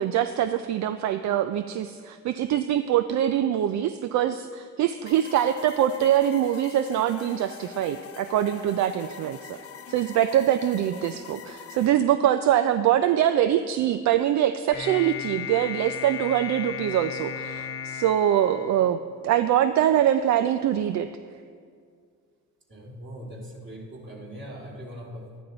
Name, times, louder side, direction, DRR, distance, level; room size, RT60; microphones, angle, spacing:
voice 1, 0.0-9.6 9.9-21.1, right 11 dB, 70° right, 11 dB, 0.4 m, -24 dB
sound 1, 5.1-11.9, left 7 dB, 50° left, 0.9 m, -44 dB
sound 2, 14.7-19.2, left 8 dB, 85° left, 1.1 m, -35 dB
voice 2, 22.7-25.4, equal, 40° right, -2 dB, 2.7 m, -40 dB
12.0 x 10.0 x 3.9 m, 2.1 s
cardioid pair, 90°, 30 cm